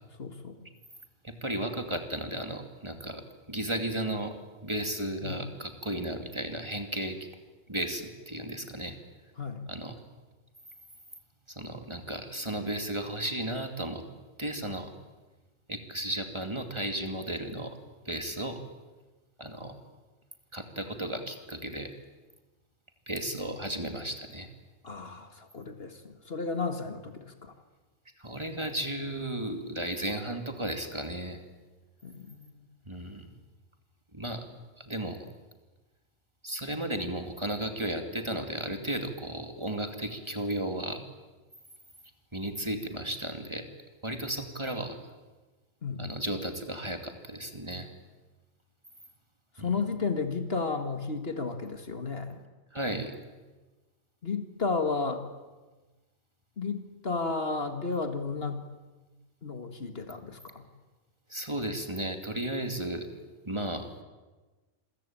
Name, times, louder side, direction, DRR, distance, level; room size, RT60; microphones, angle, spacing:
voice 1, 0.2-0.7 5.2-5.4 9.4-9.7 24.8-27.5 32.0-32.7 45.8-46.0 49.6-52.4 54.2-55.3 56.6-58.6 59.4-60.7, left 4 dB, 55° left, 8 dB, 2.1 m, -33 dB
voice 2, 1.2-4.3 4.6-7.2 7.7-8.9 9.7-10.0 11.5-14.0 14.4-14.9 15.7-17.8 18.0-18.6 19.4-19.8 20.5-21.9 23.1-24.5 28.2-31.4 32.9-33.3 34.1-34.5 34.8-35.2 36.4-41.0 42.3-43.6 44.0-45.0 46.0-47.9 49.6-49.8 52.7-53.1 61.3-63.1 63.4-63.9, right 1 dB, 20° right, 6 dB, 2.6 m, -34 dB
27.5 x 23.0 x 8.8 m, 1.2 s
omnidirectional pair, 1.3 m